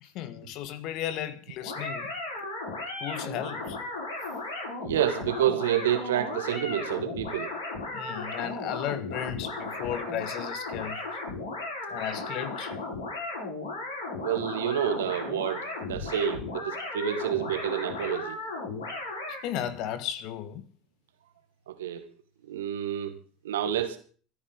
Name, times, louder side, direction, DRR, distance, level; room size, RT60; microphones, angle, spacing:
voice 1, 0.0-2.5 3.0-3.8 7.9-11.0 11.9-12.7 19.3-20.6, left 10 dB, 55° left, 1.6 m, -35 dB
sound 1, 1.6-19.4, left 2 dB, 80° left, 7.2 m, -35 dB
voice 2, 4.8-7.5 14.1-18.4 21.7-22.0 22.5-23.1 23.4-24.0, right 10 dB, 75° right, 2.0 m, -29 dB
25.5 x 9.8 x 4.0 m
hypercardioid pair, 75°, 0 cm